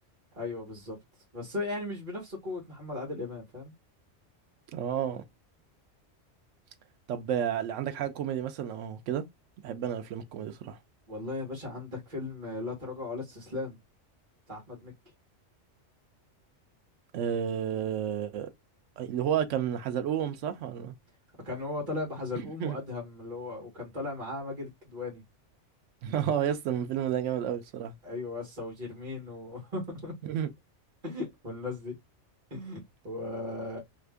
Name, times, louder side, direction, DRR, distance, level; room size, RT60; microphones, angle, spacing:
voice 1, 0.3-1.0 1.3-3.7 11.1-13.8 14.5-14.9 21.4-25.2 28.0-30.1 31.0-31.9 32.5-33.8, left 2 dB, 40° right, 1.3 m, -37 dB
voice 2, 4.7-5.2 7.1-9.2 9.6-10.8 17.1-18.5 19.0-20.9 22.6-22.8 26.0-27.9 30.2-30.5, right 9 dB, 85° right, 0.9 m, -31 dB
2.8 x 2.5 x 3.3 m
omnidirectional pair, 1.2 m